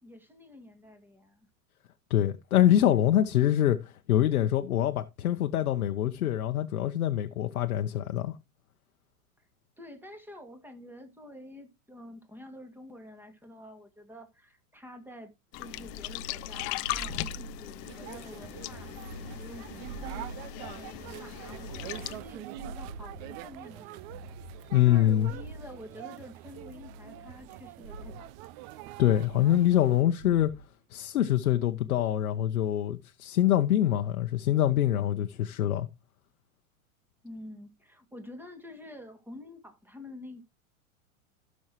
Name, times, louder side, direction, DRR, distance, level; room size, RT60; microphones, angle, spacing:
voice 1, 0.0-1.5 9.4-9.5 9.8-18.9 19.3-20.3 20.7-28.3 37.2-40.4, left 1 dB, 5° right, 2.1 m, -48 dB
voice 2, 2.1-8.4 24.7-25.3 29.0-30.5 30.9-35.9, left 12 dB, 80° left, 0.9 m, -25 dB
sound 1, 15.5-22.2, left 19 dB, 35° left, 0.5 m, -39 dB
sound 2, 15.6-18.0 18.5-20.9 21.4-23.6 24.0-25.9 26.6-27.5 27.8-28.3 29.2-29.9 30.2-30.7, right 2 dB, 80° right, 4.2 m, -45 dB
sound 3, 17.8-30.0, right 15 dB, 45° right, 0.6 m, -45 dB
15.5 x 6.4 x 3.0 m
hypercardioid pair, 105°, 42 cm